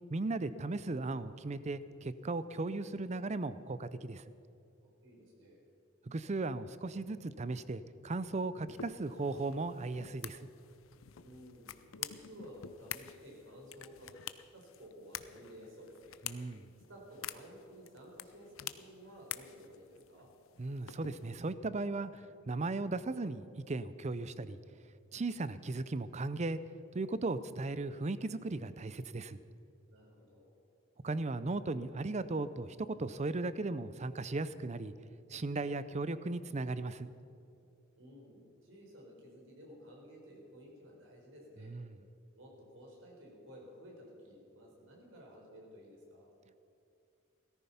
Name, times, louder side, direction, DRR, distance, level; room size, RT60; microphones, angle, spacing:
voice 1, 0.1-4.2 6.1-10.5 16.2-16.7 20.6-24.6 25.1-26.6 26.9-29.4 31.0-34.9 35.3-37.1 41.6-41.9, right 2 dB, 35° right, 14 dB, 0.5 m, -37 dB
voice 2, 4.8-5.6 11.2-14.2 14.5-16.2 16.9-20.3 29.9-30.6 38.0-41.7 42.3-46.3, equal, 65° right, -1 dB, 4.5 m, -54 dB
sound 1, 8.7-21.5, left 11 dB, 80° left, 0.6 m, -48 dB
17.5 x 14.0 x 5.7 m, 2.5 s
head